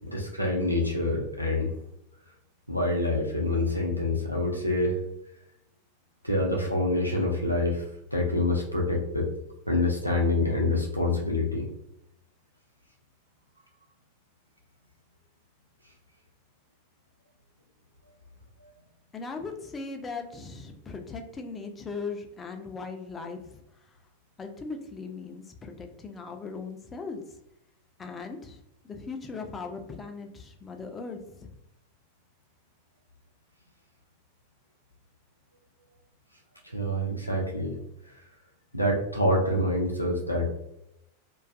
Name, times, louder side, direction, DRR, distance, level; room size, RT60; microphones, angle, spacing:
voice 1, 0.0-1.7 2.7-5.0 6.2-9.3 9.7-11.7 36.6-37.7 38.1-38.2 38.7-40.5, left 2 dB, 90° left, -1 dB, 0.4 m, -26 dB
voice 2, 19.1-24.0 24.4-27.2 28.0-31.5, left 4 dB, 20° left, 4 dB, 0.3 m, -39 dB
2.4 x 2.3 x 2.3 m, 0.80 s
figure-of-eight pair, 90°, 0 cm